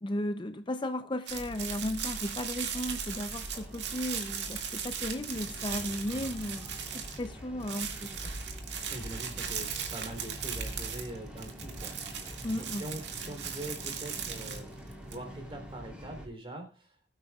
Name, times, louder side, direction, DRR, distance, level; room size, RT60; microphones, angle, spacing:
voice 1, 0.0-8.2 12.4-12.8, left 1 dB, 30° left, 9 dB, 0.6 m, -35 dB
sound 1, 1.3-16.3, equal, 5° right, 4.2 m, -44 dB
sound 2, 1.3-7.3 7.6-15.2, right 8 dB, 90° right, 2.1 m, -38 dB
voice 2, 8.9-14.7 15.0-17.1, right 1 dB, 30° right, 4 dB, 3.4 m, -43 dB
21.0 x 8.8 x 2.4 m, 0.33 s
head